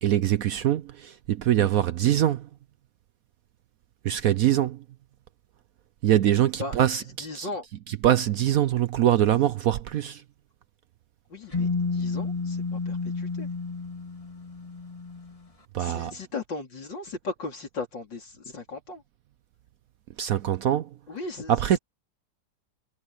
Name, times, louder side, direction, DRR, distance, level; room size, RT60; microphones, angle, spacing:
voice 1, 0.0-2.5 4.0-4.8 6.0-7.5 7.9-10.2 15.7-16.1 20.2-21.0 21.5-21.8, right 11 dB, 65° right, 0.9 m, -23 dB
voice 2, 7.2-7.7 11.3-13.5 15.8-19.0 21.1-21.8, left 3 dB, 85° left, 4.8 m, -37 dB
sound 1, 11.5-15.4, left 4 dB, 20° left, 2.9 m, -31 dB
omnidirectional pair, 1.9 m